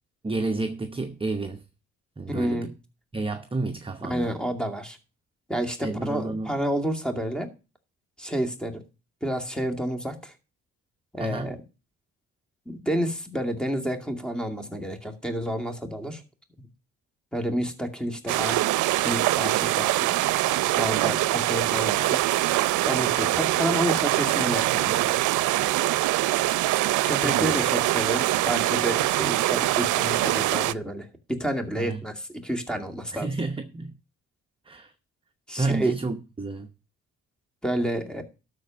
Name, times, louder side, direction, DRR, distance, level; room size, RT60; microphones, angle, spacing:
voice 1, 0.2-1.6 2.2-2.7 3.1-4.4 5.8-6.5 11.2-11.6 27.2-27.7 31.8-32.0 33.1-34.0 34.7-34.9 35.6-36.7, right 2 dB, 15° right, 0.9 m, -30 dB
voice 2, 2.3-2.7 4.0-5.0 5.5-7.5 8.2-8.8 9.2-10.3 11.1-11.6 12.7-16.2 17.3-18.6 19.0-20.1 20.8-22.2 22.8-25.1 27.0-33.3 35.5-35.9 37.6-38.2, right 1 dB, 5° left, 2.3 m, -29 dB
sound 1, 18.3-30.7, right 16 dB, 85° right, 0.5 m, -23 dB
12.5 x 4.4 x 7.5 m
cardioid pair, 90°, 30 cm